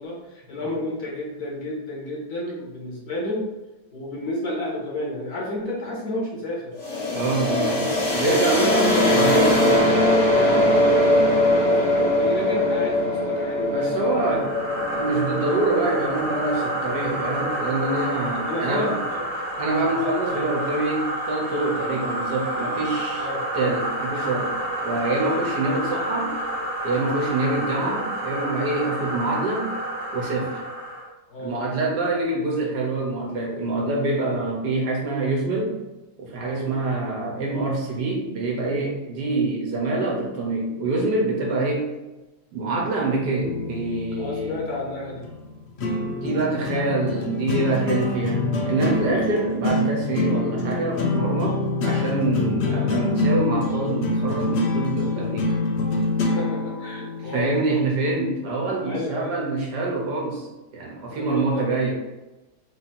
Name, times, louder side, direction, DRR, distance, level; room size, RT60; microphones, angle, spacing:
voice 1, 0.0-3.5 3.9-6.8 8.2-9.5 9.8-9.9 10.2-14.4 18.4-19.3 23.2-23.4 25.2-25.4 27.3-27.5 31.3-31.6 36.5-36.7 44.2-45.3 49.1-49.3 56.3-57.6 58.8-59.4 61.1-61.6, left 1 dB, 60° left, -3 dB, 1.6 m, -31 dB
sound 1, 6.8-18.5, left 1 dB, 35° left, 0.7 m, -22 dB
voice 2, 7.1-9.8 13.6-14.6 15.0-18.9 19.6-23.3 23.5-24.5 24.8-26.3 26.8-29.7 30.1-30.6 31.4-35.7 36.2-41.9 42.5-44.6 46.0-55.5 57.2-60.5 60.7-61.9, right 2 dB, 70° right, -2 dB, 1.5 m, -25 dB
sound 2, 14.1-31.1, right 1 dB, 40° right, 1.2 m, -29 dB
sound 3, 43.4-57.4, left 2 dB, 75° left, 0.6 m, -26 dB
4.3 x 2.8 x 4.2 m, 1.1 s
omnidirectional pair, 1.9 m